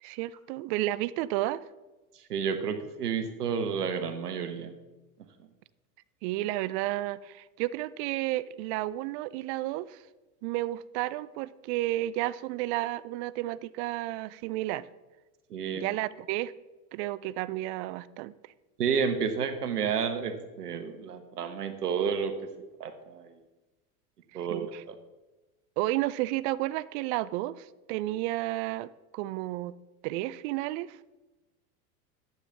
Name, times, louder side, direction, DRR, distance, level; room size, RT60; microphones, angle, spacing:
voice 1, 0.0-1.6 6.2-10.0 10.4-14.8 15.7-16.5 16.9-18.3 24.4-24.8 25.8-29.7 30.0-31.0, right 16 dB, 50° right, 18 dB, 0.5 m, -32 dB
voice 2, 2.3-4.7 15.5-15.8 18.8-22.3 22.8-23.4 24.3-24.9, right 6 dB, 85° right, 9 dB, 1.2 m, -31 dB
11.5 x 9.1 x 3.5 m, 1.1 s
hypercardioid pair, 90°, 45 cm